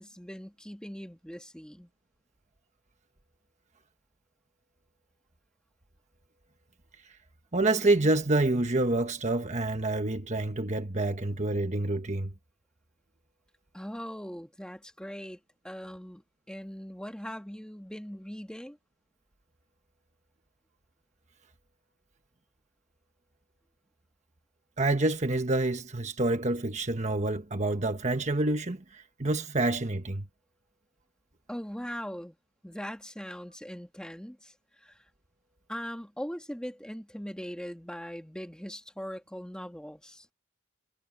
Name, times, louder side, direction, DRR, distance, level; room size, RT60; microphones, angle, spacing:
voice 1, 0.0-1.9 13.7-15.4 15.6-16.2 16.5-18.8 31.5-32.4 32.6-35.0 35.7-40.3, equal, 5° left, 1.9 m, -40 dB
voice 2, 7.5-12.3 24.8-30.3, right 2 dB, 35° right, 1.3 m, -27 dB
head